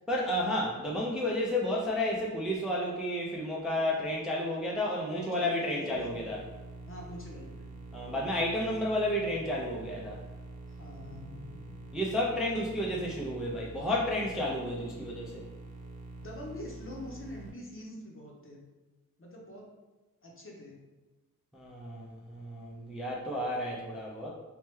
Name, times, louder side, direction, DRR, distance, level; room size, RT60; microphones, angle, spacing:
voice 1, 0.1-6.4 7.9-10.2 11.9-15.4 21.5-24.3, left 1 dB, ahead, -3 dB, 0.4 m, -31 dB
voice 2, 5.1-6.4 6.9-7.7 10.7-11.8 16.2-18.6 19.2-19.6 20.2-20.8, left 1 dB, 35° left, -2 dB, 0.7 m, -45 dB
sound 1, 5.9-17.5, right 2 dB, 85° right, 0.5 m, -46 dB
3.2 x 2.2 x 3.0 m, 1.2 s
wide cardioid pair, 100°, 35 cm